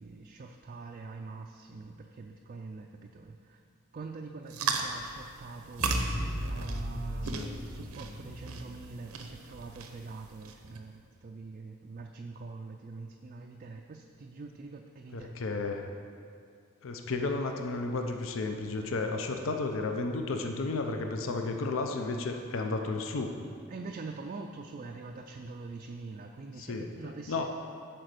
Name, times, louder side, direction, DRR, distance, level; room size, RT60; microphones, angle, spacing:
voice 1, 0.0-3.6 3.9-15.3 23.7-27.5, right 3 dB, 40° right, 2 dB, 0.3 m, -44 dB
sound 1, 4.5-10.8, right 4 dB, 85° right, 0.7 m, -38 dB
sound 2, 5.8-8.9, equal, 25° left, 1.1 m, -36 dB
voice 2, 15.1-15.9 16.8-23.3 26.6-27.5, left 3 dB, 60° left, 4 dB, 0.6 m, -33 dB
8.9 x 4.4 x 6.5 m, 2.3 s
head